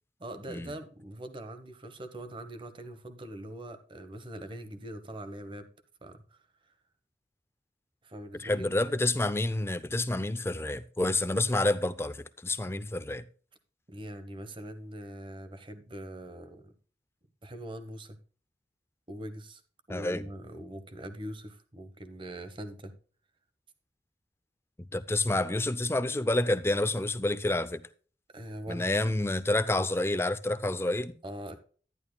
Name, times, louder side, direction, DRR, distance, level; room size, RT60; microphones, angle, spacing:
voice 1, 0.2-5.7 6.0-6.2 8.0-8.7 13.9-16.7 17.4-18.2 19.1-19.6 19.9-22.9 28.3-28.9 31.2-31.6, right 1 dB, 30° right, 1.1 m, -42 dB
voice 2, 8.4-13.2 19.9-20.3 24.9-27.8 28.7-31.1, left 2 dB, 15° left, 0.6 m, -29 dB
11.5 x 11.0 x 2.3 m
head